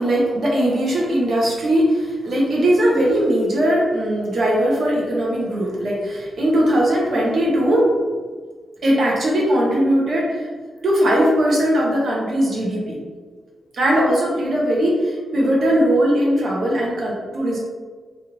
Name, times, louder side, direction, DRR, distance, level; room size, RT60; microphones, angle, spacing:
voice 1, 0.0-7.9 8.8-10.5 10.8-13.0 13.7-17.6, equal, 60° right, -3 dB, 0.9 m, -19 dB
3.1 x 2.5 x 3.1 m, 1.5 s
wide cardioid pair, 135°, 0 cm